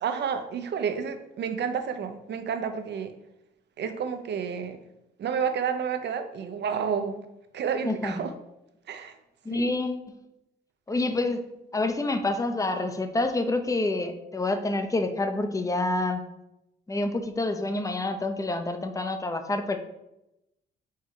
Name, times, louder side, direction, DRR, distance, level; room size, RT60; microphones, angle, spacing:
voice 1, 0.0-3.1 3.8-4.8 5.2-7.2 7.5-8.3 8.9-9.2 9.5-9.8, right 7 dB, 60° right, 8 dB, 0.8 m, -30 dB
voice 2, 7.8-8.2 9.4-10.2 10.9-11.5 11.7-16.2 16.9-19.8, left 2 dB, 15° left, 7 dB, 0.7 m, -27 dB
4.7 x 4.5 x 4.8 m, 0.88 s
cardioid pair, 90°, 20 cm